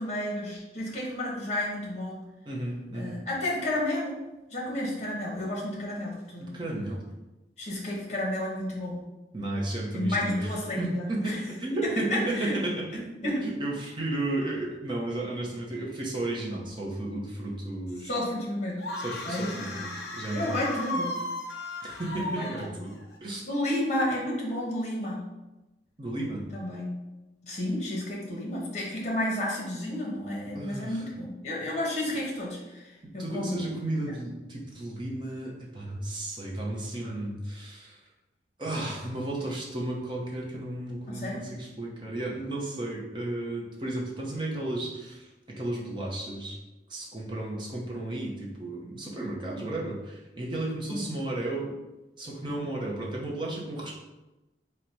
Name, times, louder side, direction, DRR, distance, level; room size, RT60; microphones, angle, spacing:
voice 1, 0.0-2.2 2.9-4.2 4.5-6.6 7.6-9.0 9.9-11.4 11.8-12.6 13.2-13.4 18.1-18.8 19.2-19.7 20.3-21.1 22.2-22.8 23.5-25.2 26.5-26.9 27.4-33.7 41.1-41.4 50.9-51.1, left 1 dB, 40° left, -3 dB, 1.1 m, -31 dB
voice 2, 2.4-3.2 6.4-7.0 9.3-10.5 10.8-18.1 19.0-20.6 21.8-22.9 23.2-23.4 26.0-26.4 30.5-31.0 33.2-38.0 38.6-46.6 46.9-51.7 52.2-53.9, right 1 dB, 25° right, -3 dB, 0.7 m, -33 dB
sound 1, 18.8-23.2, left 2 dB, 65° left, 0.5 m, -36 dB
3.9 x 2.2 x 4.5 m, 1.0 s
head